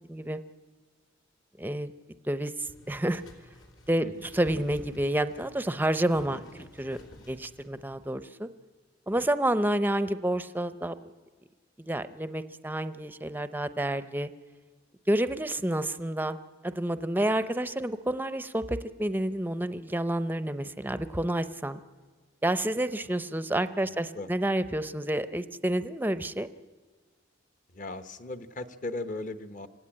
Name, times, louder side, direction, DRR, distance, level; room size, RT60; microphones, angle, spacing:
voice 1, 0.1-0.4 1.6-1.9 2.3-3.2 3.9-4.1 4.3-6.4 6.8-7.0 7.3-8.5 9.1-11.1 11.9-14.3 15.1-16.4 16.6-21.8 22.4-26.5, right 1 dB, 10° right, 12 dB, 0.6 m, -29 dB
sound 1, 2.7-8.1, equal, 75° left, 3.4 m, -51 dB
voice 2, 6.3-6.7 23.8-24.3 27.7-29.7, left 2 dB, 45° left, 10 dB, 1.0 m, -38 dB
26.0 x 17.0 x 8.8 m, 1.5 s
head